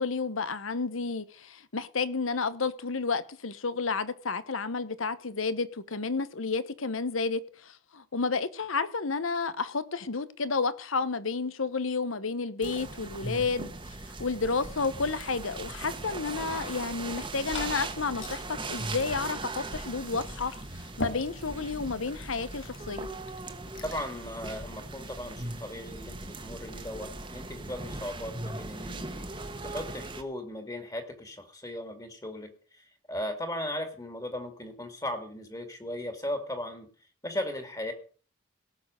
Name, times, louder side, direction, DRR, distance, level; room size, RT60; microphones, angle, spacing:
voice 1, 0.0-13.7 14.1-23.1, left 4 dB, 90° left, 1.0 m, -31 dB
sound 1, 12.6-30.2, right 2 dB, 25° right, 1.3 m, -39 dB
Glass / Fill (with liquid), 17.0-24.1, left 2 dB, 65° left, 1.8 m, -43 dB
voice 2, 23.8-29.2 29.6-36.9 37.2-37.9, left 1 dB, 20° left, 2.2 m, -37 dB
17.5 x 6.7 x 6.4 m
head